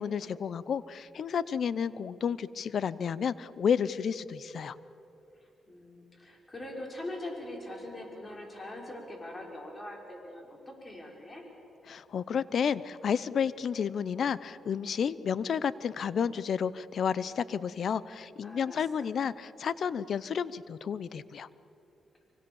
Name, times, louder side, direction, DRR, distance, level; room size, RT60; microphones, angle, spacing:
voice 1, 0.0-4.8 11.9-21.5, left 7 dB, 60° left, 17 dB, 0.7 m, -31 dB
voice 2, 5.7-11.4 18.4-19.1, left 1 dB, 25° left, 0 dB, 5.8 m, -42 dB
25.0 x 24.5 x 7.2 m, 2.8 s
cardioid pair, 90°, 0 cm